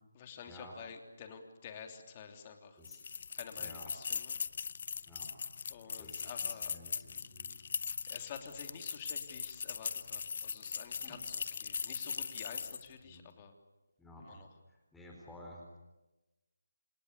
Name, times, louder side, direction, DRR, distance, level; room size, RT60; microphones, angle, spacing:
voice 1, 0.1-4.4 5.7-6.8 8.1-13.6 14.3-14.5, left 7 dB, 25° left, 5 dB, 3.2 m, -50 dB
sound 1, 2.8-12.9, left 6 dB, 40° left, 0.8 m, -40 dB
voice 2, 3.6-4.0 5.1-5.5 6.0-7.5 11.0-11.2 13.0-13.3 14.0-15.8, left 1 dB, 5° left, -2 dB, 4.1 m, -53 dB
28.5 x 28.0 x 6.9 m, 1.0 s
figure-of-eight pair, 155°, 0 cm